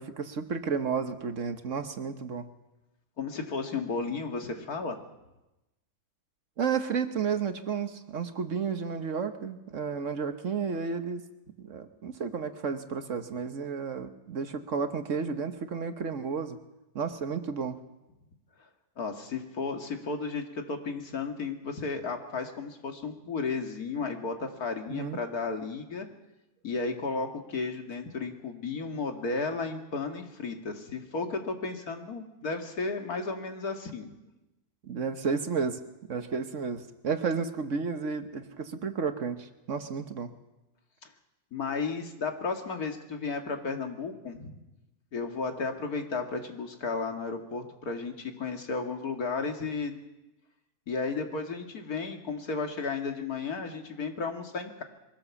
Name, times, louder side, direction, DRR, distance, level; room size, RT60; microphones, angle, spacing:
voice 1, 0.0-2.5 6.6-11.2 11.6-16.6 16.9-17.8 24.9-25.2 34.8-35.8 36.1-40.3, right 5 dB, 55° right, 8 dB, 1.4 m, -32 dB
voice 2, 3.2-5.0 19.0-26.1 26.6-34.1 41.5-44.6 45.1-50.0 50.9-54.8, left 4 dB, 75° left, 4 dB, 2.4 m, -33 dB
22.5 x 16.0 x 7.1 m, 0.99 s
omnidirectional pair, 1.6 m